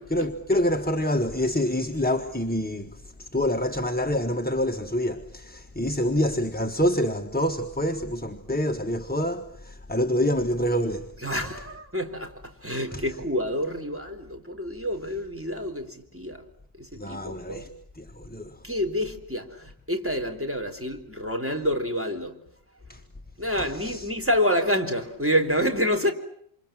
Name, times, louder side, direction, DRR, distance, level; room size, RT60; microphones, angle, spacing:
voice 1, 0.1-11.1 12.9-13.0 17.0-17.7 18.0-18.5 22.9-23.0 23.8-24.1, equal, 10° left, 1.4 m, -26 dB
voice 2, 11.2-16.4 16.8-17.7 18.6-22.4 23.4-26.1, equal, 10° right, 3.7 m, -28 dB
28.0 x 27.5 x 7.5 m
omnidirectional pair, 1.1 m